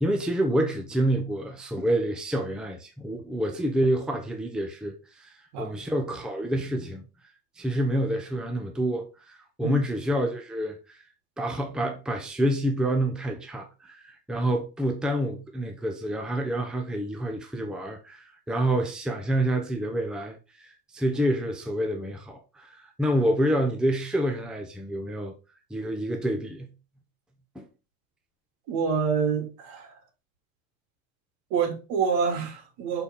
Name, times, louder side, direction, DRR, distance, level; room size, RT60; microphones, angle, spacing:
voice 1, 0.0-7.0 7.6-11.0 11.4-25.3 25.7-26.7 27.5-27.7, right 1 dB, ahead, 0.8 m, -28 dB
voice 2, 28.7-29.9 31.5-33.0, right 6 dB, 65° right, 2.6 m, -27 dB
6.5 x 4.3 x 3.6 m
supercardioid pair, 130°, 45 cm